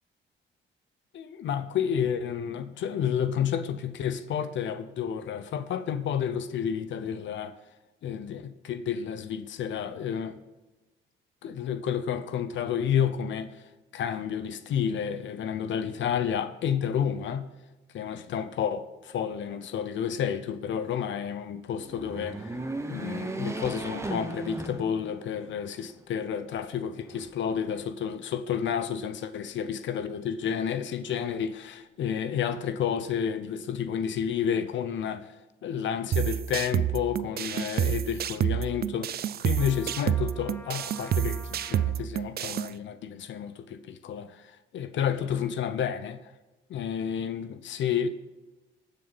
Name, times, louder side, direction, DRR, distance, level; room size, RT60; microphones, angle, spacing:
voice 1, 1.1-7.6 8.0-10.4 11.4-13.6 13.9-17.5 17.9-22.6 22.9-35.3 35.6-46.2 46.7-48.1, left 8 dB, 70° left, 0.8 m, -30 dB
sound 1, 21.8-25.4 25.9-26.0 27.1-27.9, right 2 dB, 15° right, 1.2 m, -36 dB
sound 2, 36.1-42.7, right 10 dB, 50° right, 0.5 m, -29 dB
Trumpet, 39.5-42.1, left 2 dB, 10° left, 0.7 m, -48 dB
19.5 x 6.7 x 4.1 m
cardioid pair, 90°, 20 cm